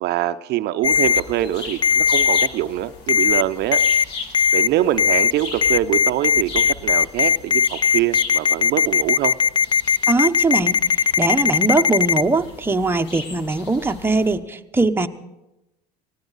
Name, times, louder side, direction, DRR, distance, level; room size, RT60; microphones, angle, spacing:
voice 1, 0.0-4.1 4.5-9.3, right 13 dB, 55° right, 10 dB, 0.6 m, -24 dB
Ringtone, 0.8-1.2 1.8-2.5 3.1-3.4 3.7-4.0 4.3-4.7 5.0-5.3 5.6-12.2, left 6 dB, 25° left, 0.5 m, -17 dB
sound 1, 0.9-14.4, left 4 dB, 60° left, 2.1 m, -38 dB
voice 2, 10.1-15.1, right 3 dB, 10° right, 5 dB, 0.9 m, -21 dB
19.0 x 16.0 x 4.0 m, 0.95 s
hypercardioid pair, 80°, 20 cm